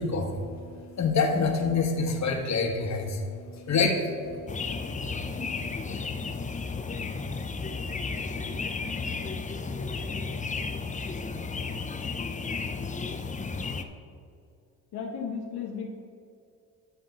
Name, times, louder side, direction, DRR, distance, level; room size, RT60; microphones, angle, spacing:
voice 1, 0.0-5.9, left 4 dB, 45° left, 3 dB, 1.4 m, -28 dB
sound 1, 4.5-13.8, left 4 dB, 20° left, 0.5 m, -33 dB
voice 2, 14.9-15.9, left 6 dB, 75° left, 0 dB, 1.1 m, -34 dB
10.5 x 3.6 x 7.0 m, 2.5 s
supercardioid pair, 75°, 38 cm